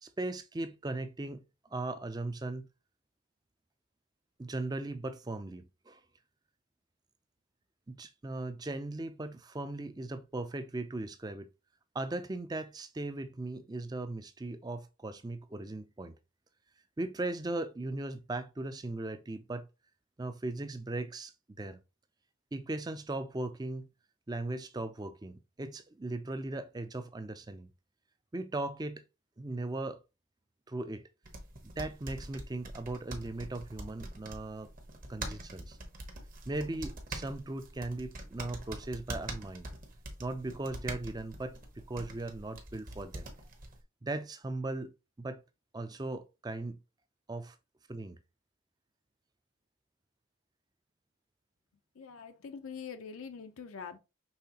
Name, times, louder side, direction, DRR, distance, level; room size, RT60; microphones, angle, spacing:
voice 1, 0.0-1.4 1.7-2.7 4.4-6.0 7.9-11.5 11.9-16.2 17.0-19.7 20.2-21.8 22.5-23.9 24.3-27.7 28.3-29.0 29.4-30.0 30.7-31.0 31.6-34.7 35.1-35.8 36.5-39.7 40.2-43.3 44.0-45.4 45.7-46.8 47.3-47.6 47.9-48.2, right 2 dB, 20° right, 0.4 m, -38 dB
sound 1, 31.3-43.8, right 2 dB, 40° right, 1.0 m, -44 dB
voice 2, 51.9-54.0, left 6 dB, 80° left, 0.6 m, -44 dB
5.6 x 3.3 x 2.8 m
head